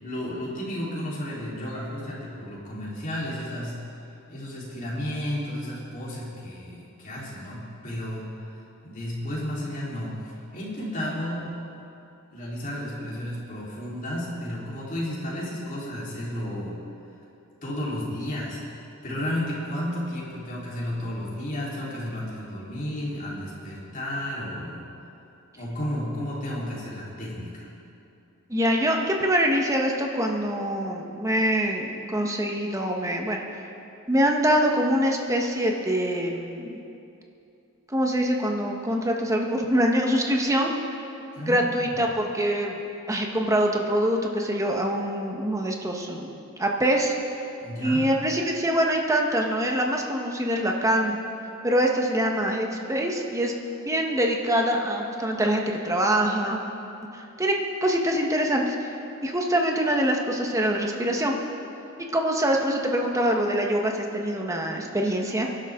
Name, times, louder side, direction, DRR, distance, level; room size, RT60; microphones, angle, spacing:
voice 1, 0.0-3.8 4.3-11.6 12.3-16.7 17.6-24.8 25.6-27.7 41.3-42.0 47.6-48.0, left 1 dB, 40° left, -6 dB, 3.9 m, -33 dB
voice 2, 28.5-33.4 34.1-36.8 37.9-40.7 41.5-42.8 43.1-47.1 47.8-51.2 51.6-53.5 53.8-56.6 57.1-58.9 59.2-61.4 62.1-65.5, equal, 15° right, 1 dB, 1.3 m, -24 dB
23.5 x 11.5 x 3.8 m, 2.7 s
head